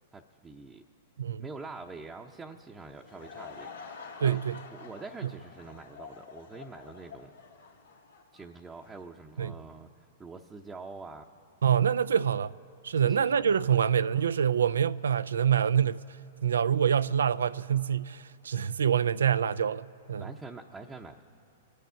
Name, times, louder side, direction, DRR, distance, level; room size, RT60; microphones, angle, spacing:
voice 1, 0.1-0.8 1.4-4.4 4.7-7.3 8.3-11.3 13.0-13.7 20.2-21.2, right 3 dB, 15° right, 0.7 m, -45 dB
Laughter / Crowd, 2.7-9.1, left 5 dB, 85° left, 2.0 m, -48 dB
voice 2, 4.2-4.6 9.4-9.5 11.6-12.5 12.8-16.0 16.4-20.2, right 8 dB, 80° right, 0.3 m, -26 dB
27.0 x 9.4 x 5.7 m
hypercardioid pair, 110°, 0 cm